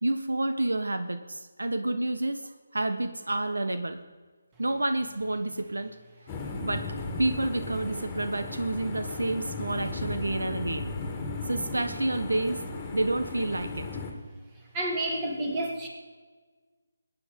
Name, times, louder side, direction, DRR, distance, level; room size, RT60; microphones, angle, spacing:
voice 1, 0.0-4.0 4.6-6.0 6.6-10.9 11.5-12.6 12.9-13.9, right 2 dB, 80° right, 9 dB, 1.2 m, -29 dB
sound 1, 6.3-14.1, left 3 dB, 15° left, 2.2 m, -36 dB
voice 2, 14.7-15.9, right 1 dB, 20° right, 1 dB, 2.8 m, -29 dB
19.5 x 9.7 x 5.5 m, 1.4 s
figure-of-eight pair, 155°, 0 cm